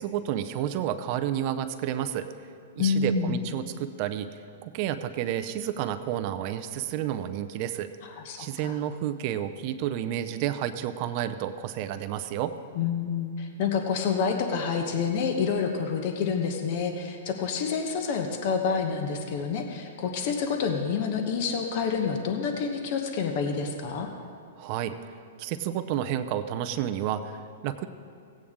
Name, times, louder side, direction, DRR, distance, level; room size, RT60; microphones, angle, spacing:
voice 1, 0.0-2.3 2.8-7.9 8.4-12.5 24.6-25.0 25.4-27.9, right 11 dB, 45° right, 9 dB, 0.5 m, -30 dB
voice 2, 2.8-3.4 8.2-8.8 12.7-24.1, left 5 dB, 50° left, 4 dB, 1.0 m, -28 dB
16.5 x 8.6 x 3.7 m, 2.2 s
hypercardioid pair, 135°, 0 cm